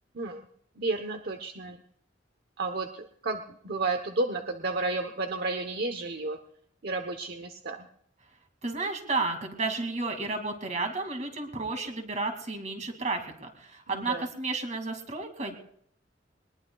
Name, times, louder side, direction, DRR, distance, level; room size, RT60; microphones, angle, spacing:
voice 1, 0.8-1.8 2.6-6.4 6.8-7.9 13.9-14.2, right 3 dB, 60° right, 6 dB, 1.0 m, -32 dB
voice 2, 8.6-15.6, right 3 dB, 40° right, 5 dB, 2.5 m, -32 dB
22.0 x 20.5 x 2.4 m, 0.67 s
head